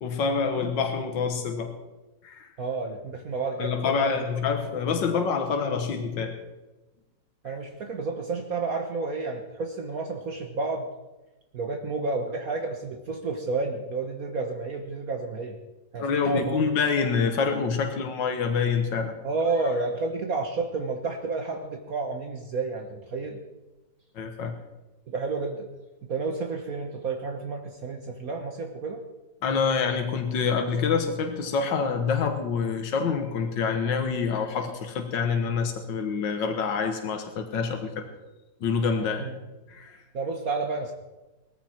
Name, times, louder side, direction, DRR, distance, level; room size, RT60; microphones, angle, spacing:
voice 1, 0.0-1.7 2.2-2.5 3.6-6.4 16.0-19.1 24.2-24.5 29.4-38.1 38.6-39.3 39.7-40.0, left 5 dB, 80° left, 5 dB, 2.1 m, -26 dB
voice 2, 2.6-4.3 7.4-10.9 11.5-15.6 15.9-16.6 19.2-23.4 25.1-25.7 26.1-29.0 39.2-39.4 40.1-40.9, right 3 dB, 55° right, 4 dB, 1.5 m, -30 dB
18.5 x 14.5 x 4.4 m, 1.1 s
omnidirectional pair, 2.0 m